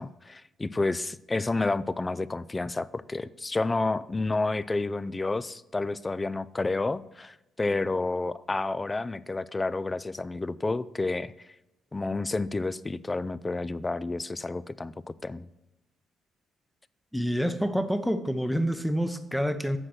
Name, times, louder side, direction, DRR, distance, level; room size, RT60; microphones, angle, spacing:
voice 1, 0.0-11.5 11.9-15.5, left 3 dB, 20° left, 18 dB, 0.3 m, -30 dB
voice 2, 17.1-19.8, equal, ahead, 10 dB, 0.7 m, -27 dB
7.7 x 6.3 x 5.8 m, 0.98 s
cardioid pair, 90°, 0 cm